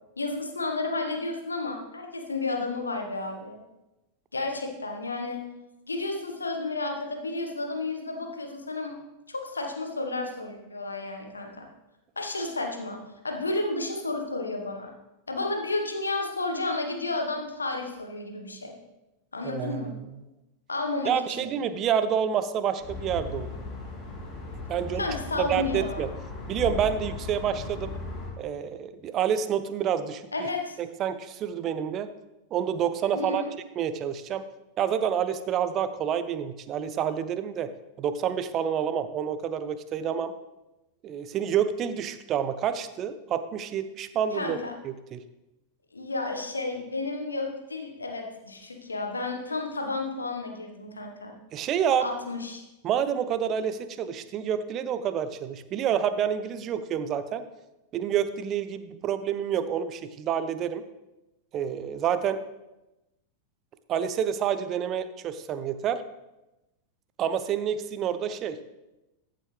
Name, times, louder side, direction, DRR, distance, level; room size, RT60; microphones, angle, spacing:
voice 1, 0.2-3.6 4.3-5.4 5.9-9.0 9.3-11.7 12.2-13.0 13.2-14.9 15.3-18.7 19.3-20.0 20.7-21.5 25.0-26.1 30.3-30.8 33.1-33.5 44.3-44.7 45.9-51.4 52.0-52.6, left 3 dB, 80° left, 3 dB, 1.4 m, -32 dB
voice 2, 19.4-20.1 21.0-23.5 24.7-25.1 25.4-26.1 26.5-27.9 28.4-30.5 30.8-32.1 32.5-33.4 33.8-34.5 34.8-37.7 38.0-40.3 41.0-44.6 44.8-45.2 51.5-52.1 52.8-57.4 57.9-60.8 61.5-62.4 63.9-66.0 67.2-68.6, right 8 dB, 35° right, 12 dB, 0.6 m, -28 dB
sound 1, 22.8-28.3, left 3 dB, 25° left, 3.2 m, -37 dB
14.0 x 7.6 x 3.3 m, 0.98 s
figure-of-eight pair, 90°, 0 cm